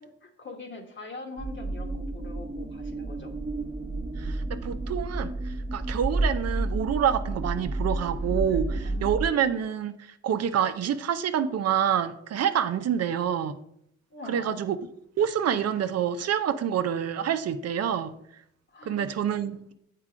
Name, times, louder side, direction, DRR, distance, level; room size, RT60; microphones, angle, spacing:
voice 1, 0.0-3.3 8.5-9.1 14.1-14.6 18.7-19.1, left 3 dB, 40° left, 3 dB, 1.2 m, -43 dB
sound 1, 1.4-9.3, right 2 dB, 20° right, 0.9 m, -31 dB
voice 2, 4.2-9.9 10.2-13.6 14.3-14.8 15.2-18.1 18.9-19.7, right 8 dB, 55° right, 11 dB, 0.6 m, -27 dB
7.4 x 4.7 x 4.9 m, 0.71 s
cardioid pair, 90°, 30 cm